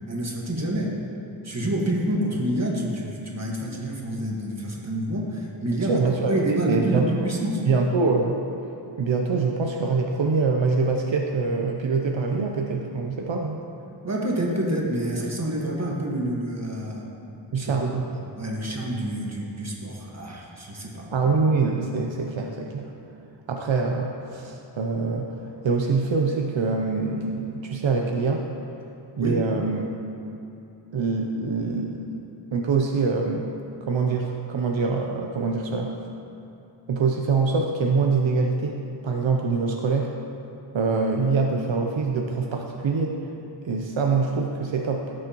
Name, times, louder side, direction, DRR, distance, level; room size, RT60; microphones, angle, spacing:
voice 1, 0.1-0.9 1.4-7.6 14.0-17.1 17.6-21.1 29.2-29.4, right 1 dB, 35° right, -2 dB, 1.7 m, -28 dB
voice 2, 5.9-6.3 6.7-7.1 7.7-8.4 9.0-13.6 17.5-18.0 21.1-22.9 23.5-25.3 25.6-28.5 29.2-29.9 30.9-32.2 32.5-33.5 33.8-35.9 36.9-40.1 40.7-43.2 43.6-45.1, right 4 dB, 80° right, 2 dB, 0.7 m, -24 dB
16.5 x 6.4 x 3.0 m, 2.9 s
wide cardioid pair, 70°, 45 cm